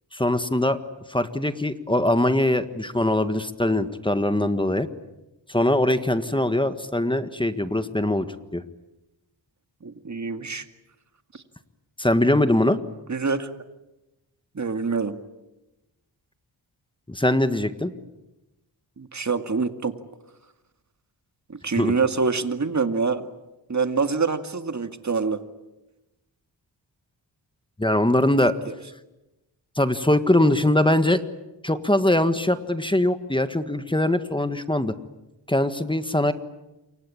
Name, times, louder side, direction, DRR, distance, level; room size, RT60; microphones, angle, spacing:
voice 1, 0.1-0.8 1.1-4.9 5.5-8.3 8.5-8.6 12.0-12.8 17.1-17.9 21.8-21.9 27.8-28.5 29.8-31.2 31.6-34.9 35.5-36.3, left 1 dB, 10° left, 10 dB, 1.6 m, -22 dB
voice 2, 9.8-10.7 11.3-11.4 13.1-13.5 14.5-15.2 19.0-19.9 21.5-23.3 23.7-25.4, right 4 dB, 40° right, 8 dB, 2.2 m, -25 dB
28.0 x 24.5 x 8.7 m, 0.99 s
cardioid pair, 75°, 44 cm